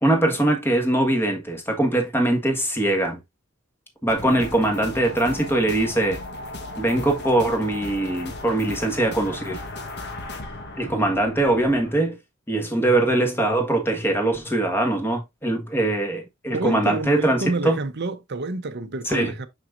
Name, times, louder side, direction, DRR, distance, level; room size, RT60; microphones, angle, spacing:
voice 1, 0.0-3.2 4.0-6.2 6.8-9.6 10.8-12.2 12.5-17.8 19.0-19.3, right 1 dB, 10° left, 1.5 m, -22 dB
sound 1, 4.1-11.9, left 2 dB, 55° left, 1.3 m, -36 dB
voice 2, 16.5-19.5, right 3 dB, 55° right, 0.8 m, -28 dB
6.2 x 5.9 x 2.6 m
head